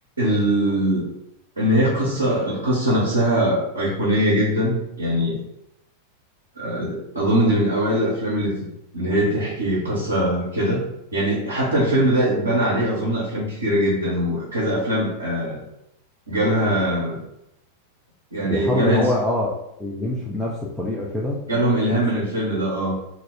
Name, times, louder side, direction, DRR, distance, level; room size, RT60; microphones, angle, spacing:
voice 1, 0.2-1.1 1.6-5.4 6.6-8.6 8.9-10.8 11.1-15.6 16.3-17.2 18.3-19.1 21.5-23.0, right 1 dB, 75° right, -6 dB, 0.6 m, -21 dB
voice 2, 18.4-21.4, left 1 dB, 5° left, -5 dB, 0.4 m, -25 dB
2.3 x 2.1 x 3.1 m, 0.82 s
figure-of-eight pair, 90°, 0 cm